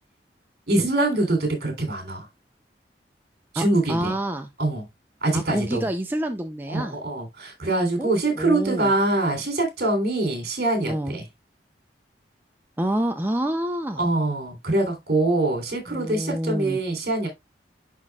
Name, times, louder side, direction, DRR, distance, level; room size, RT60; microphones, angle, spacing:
voice 1, 0.7-2.3 3.5-4.1 4.6-4.8 5.2-5.9 6.7-11.2 14.0-17.3, right 2 dB, 60° right, 3.3 m, -24 dB
voice 2, 3.6-4.5 5.3-7.0 8.0-8.9 10.9-11.1 12.8-14.0 15.9-16.8, right 1 dB, 10° right, 0.5 m, -27 dB
11.0 x 4.2 x 2.3 m
head